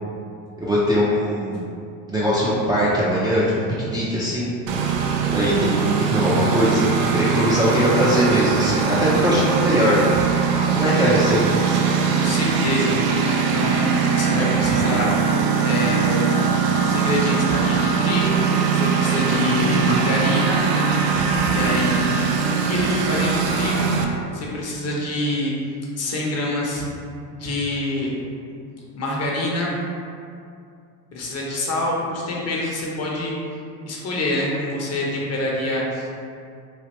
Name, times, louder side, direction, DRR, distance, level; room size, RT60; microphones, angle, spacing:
voice 1, 0.6-1.7 2.1-3.4 3.9-4.5 5.3-10.0 10.7-11.6, equal, 10° right, -10 dB, 0.4 m, -20 dB
Engine, 4.7-24.0, right 6 dB, 85° right, 0.5 m, -21 dB
voice 2, 12.0-13.0 13.4-15.2 15.6-16.3 16.8-18.4 18.7-20.6 21.5-23.9 24.3-25.5 26.0-26.9 27.3-28.2 28.9-29.7 31.1-33.3 33.8-36.1, left 1 dB, 30° left, -3 dB, 0.8 m, -26 dB
3.1 x 2.4 x 2.9 m, 2.4 s
hypercardioid pair, 85°, 47 cm